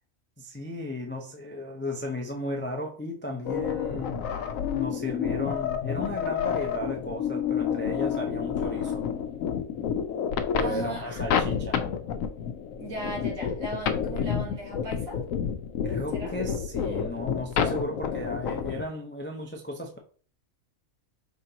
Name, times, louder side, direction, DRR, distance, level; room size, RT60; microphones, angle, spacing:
voice 1, 0.4-4.3 4.7-9.1 10.5-11.8 15.8-20.0, left 1 dB, 20° left, 0.3 m, -35 dB
sound 1, 3.5-18.8, left 8 dB, 75° left, 1.0 m, -29 dB
voice 2, 10.6-11.2 12.8-15.2 16.1-16.4, right 1 dB, 75° right, 2.0 m, -37 dB
5.2 x 3.5 x 2.8 m
omnidirectional pair, 1.4 m